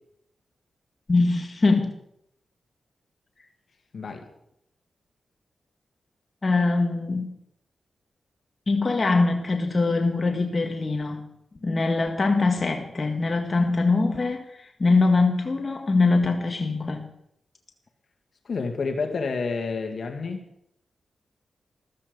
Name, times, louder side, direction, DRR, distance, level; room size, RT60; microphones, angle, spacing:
voice 1, 1.1-1.9 6.4-7.3 8.7-11.3 11.6-17.1, left 3 dB, 40° left, 3 dB, 1.9 m, -23 dB
voice 2, 3.9-4.3 18.4-20.5, left 4 dB, 65° left, 5 dB, 2.2 m, -29 dB
14.5 x 13.5 x 5.4 m, 0.77 s
cardioid pair, 60°, 0 cm